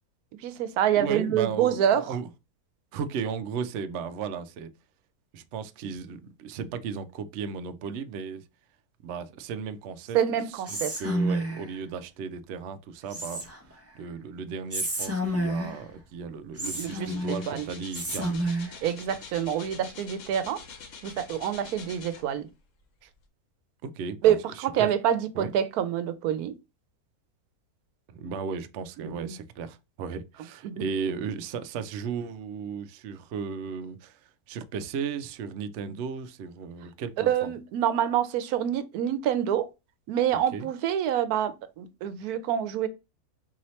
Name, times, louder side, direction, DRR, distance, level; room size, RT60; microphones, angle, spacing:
voice 1, 0.4-2.2 10.1-10.9 16.6-17.7 18.8-20.6 21.0-22.5 24.2-26.5 29.0-29.3 30.6-30.8 37.2-39.7 40.1-42.9, right 10 dB, 85° right, 1.1 m, -27 dB
voice 2, 1.0-2.3 2.9-4.7 5.3-8.5 9.0-10.2 10.7-13.4 13.9-18.4 23.8-24.3 24.8-24.9 25.3-25.5 28.1-37.3 40.5-40.7, right 6 dB, 65° right, 0.7 m, -35 dB
Whispering, 10.7-11.8 13.1-13.8 14.7-15.9 16.6-17.5 17.9-18.8, right 1 dB, 15° right, 0.6 m, -30 dB
sound 1, 16.0-16.1 16.3-22.6 23.1-23.2, left 6 dB, 60° left, 1.1 m, -45 dB
4.6 x 2.8 x 3.0 m
omnidirectional pair, 1.6 m